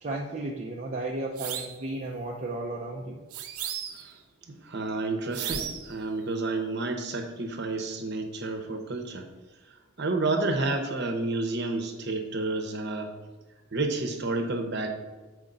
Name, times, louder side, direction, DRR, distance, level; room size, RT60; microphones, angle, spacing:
voice 1, 0.0-3.2, right 2 dB, 35° right, -1 dB, 0.5 m, -34 dB
sound 1, 1.4-1.8 3.3-4.1 5.3-5.9, right 9 dB, 85° right, 0.6 m, -35 dB
voice 2, 4.5-9.2 10.0-13.1 13.7-14.9, right 2 dB, 50° right, 5 dB, 0.9 m, -30 dB
7.5 x 5.0 x 3.9 m, 1.2 s
head